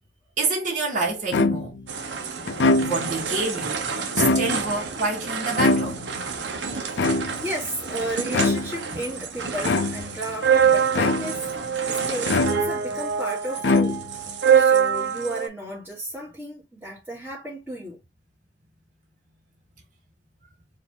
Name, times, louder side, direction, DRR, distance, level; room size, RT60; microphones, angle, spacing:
voice 1, 0.4-1.8 2.8-3.8 4.2-6.0, right 3 dB, 45° right, 1.7 m, -27 dB
sound 1, 1.3-1.9 2.5-3.2 4.0-4.8 5.6-6.3 7.0-7.6 8.3-8.9 9.6-10.2 10.9-11.5 12.3-13.0 13.6-14.3, left 3 dB, 80° left, 0.5 m, -23 dB
sound 2, 1.9-15.5, right 7 dB, 90° right, 0.9 m, -26 dB
voice 2, 7.4-11.5 11.9-14.0 14.5-18.0, right 1 dB, 10° right, 1.6 m, -33 dB
4.6 x 2.8 x 3.7 m
head